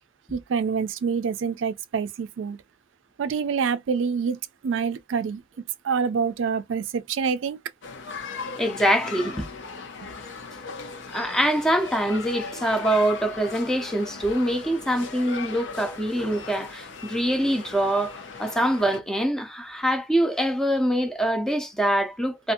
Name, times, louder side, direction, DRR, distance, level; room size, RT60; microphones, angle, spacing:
voice 1, 0.3-2.6 3.2-4.4 4.6-5.4 5.8-7.6, right 6 dB, 80° right, 0.4 m, -26 dB
sound 1, 7.8-19.0, left 5 dB, 80° left, 0.7 m, -38 dB
voice 2, 8.6-9.5 11.1-22.5, right 1 dB, 5° left, 0.5 m, -24 dB
2.5 x 2.4 x 2.7 m
head